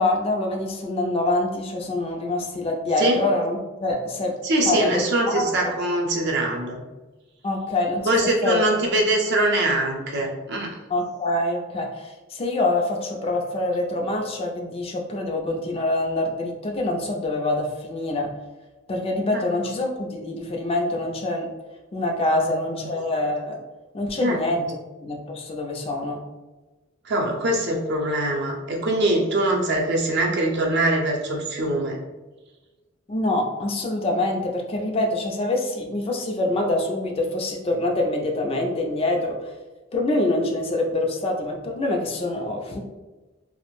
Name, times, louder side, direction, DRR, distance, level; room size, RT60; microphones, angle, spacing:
voice 1, 0.0-4.3 4.7-5.5 7.4-8.7 10.9-18.3 18.9-21.5 21.9-23.6 23.9-24.7 25.0-26.2 33.1-39.5 39.9-42.8, left 2 dB, 30° left, 1 dB, 0.3 m, -25 dB
voice 2, 4.4-6.8 8.1-10.8 19.3-19.4 22.7-22.9 24.2-24.4 27.0-32.0, right 1 dB, 55° right, 0 dB, 0.6 m, -23 dB
2.4 x 2.0 x 3.0 m, 1.2 s
head